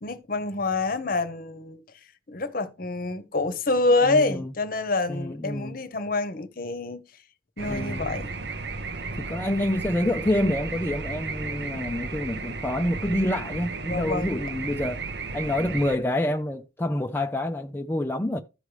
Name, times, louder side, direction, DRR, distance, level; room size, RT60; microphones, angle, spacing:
voice 1, 0.0-1.8 2.3-7.0 7.6-8.3 13.9-14.3, left 3 dB, 50° left, 0.9 m, -26 dB
voice 2, 4.0-4.5 5.1-5.8 7.6-8.1 9.2-15.0 15.3-18.4, left 1 dB, 10° left, 0.4 m, -27 dB
sound 1, 7.6-16.0, right 3 dB, 65° right, 0.7 m, -34 dB
14.0 x 4.8 x 3.2 m
head